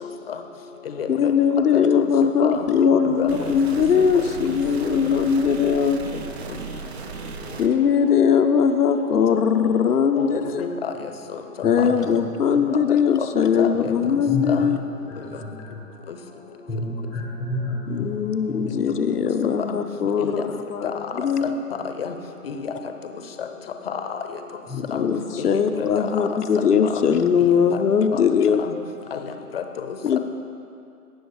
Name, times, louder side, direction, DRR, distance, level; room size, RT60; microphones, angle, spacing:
voice 1, 0.0-0.4 0.9-1.3 1.7-2.1 2.4-2.7 3.0-3.3 9.3-9.4 10.1-10.9 12.1-12.2 12.7-12.8 13.6-13.9 14.5-14.7 20.2-20.3 21.4-21.5 22.0-22.1 22.4-22.7 23.4-23.5 23.9-24.2 24.9-25.1 25.4-25.6 26.0-26.4 27.4-27.8 28.1-28.2 28.6-28.7 29.1-29.3 29.5-29.9, left 7 dB, 40° left, 7 dB, 0.8 m, -30 dB
voice 2, 1.1-6.0 7.6-10.7 11.6-14.8 17.9-21.6 24.9-28.6 30.0-30.2, left 7 dB, 75° left, 6 dB, 0.9 m, -20 dB
sound 1, 3.3-7.7, right 4 dB, 45° right, 0.8 m, -35 dB
voice 3, 15.3-15.8 16.7-18.1 18.5-18.7 24.7-24.8, left 2 dB, ahead, -4 dB, 0.8 m, -29 dB
17.0 x 6.4 x 4.8 m, 2.5 s
hypercardioid pair, 150°, 47 cm